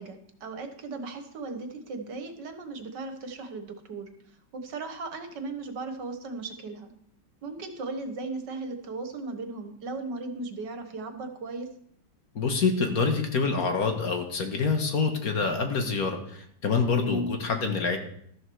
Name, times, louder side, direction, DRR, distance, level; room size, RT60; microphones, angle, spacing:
voice 1, 0.0-4.1 4.5-6.9 7.4-11.7 16.9-17.3, right 3 dB, 70° right, 7 dB, 1.9 m, -36 dB
voice 2, 12.4-18.0, left 4 dB, 55° left, 4 dB, 1.8 m, -26 dB
13.0 x 7.2 x 6.3 m, 0.67 s
omnidirectional pair, 2.0 m